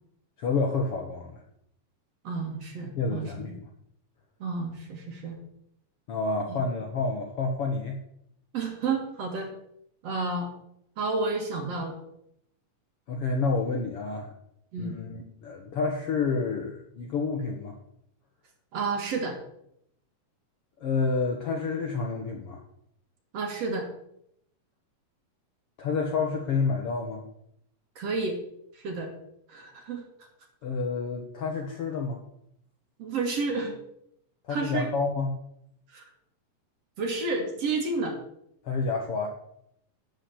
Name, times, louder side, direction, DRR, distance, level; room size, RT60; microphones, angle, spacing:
voice 1, 0.4-1.4 3.0-3.7 6.1-8.0 13.1-14.3 14.8-17.8 20.8-22.6 25.8-27.2 30.6-32.2 34.4-35.3 38.6-39.3, left 4 dB, 60° left, 2 dB, 1.6 m, -29 dB
voice 2, 2.2-3.5 4.4-5.4 6.5-6.6 8.5-9.5 10.0-10.5 11.0-11.9 14.7-15.0 18.7-19.4 23.3-23.9 28.0-28.4 28.7-29.1 29.5-30.0 33.0-33.8 34.5-34.9 35.9-36.0 37.0-38.2, right 3 dB, 55° right, 3 dB, 2.7 m, -30 dB
12.0 x 5.1 x 8.4 m, 0.74 s
omnidirectional pair, 3.8 m